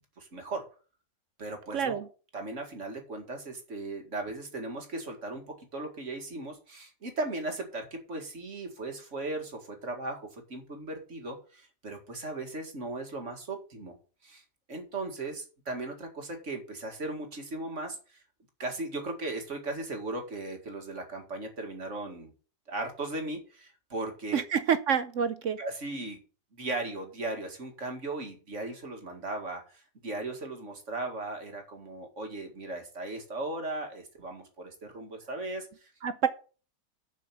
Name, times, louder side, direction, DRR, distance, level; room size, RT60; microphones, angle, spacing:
voice 1, 0.2-0.6 1.4-2.0 2.3-5.4 5.7-13.9 14.2-14.4 14.7-18.2 18.6-22.3 22.7-24.4 25.6-26.2 26.5-35.9, right 2 dB, 45° right, 4 dB, 2.2 m, -37 dB
voice 2, 1.7-2.1 24.3-25.6 36.0-36.3, right 7 dB, 60° right, 13 dB, 0.8 m, -27 dB
7.5 x 5.7 x 7.4 m, 0.37 s
omnidirectional pair, 1.8 m